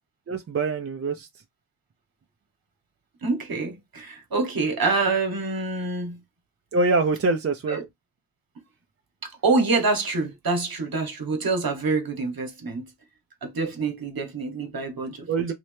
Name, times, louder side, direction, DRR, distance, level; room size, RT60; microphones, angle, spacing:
voice 1, 0.3-1.3 6.7-7.8 15.3-15.5, right 3 dB, 35° right, 0.5 m, -24 dB
voice 2, 3.2-6.2 7.7-7.8 9.2-12.8 13.4-15.3, right 3 dB, 50° right, 1.2 m, -26 dB
3.1 x 2.8 x 3.2 m
wide cardioid pair, 90°, 46 cm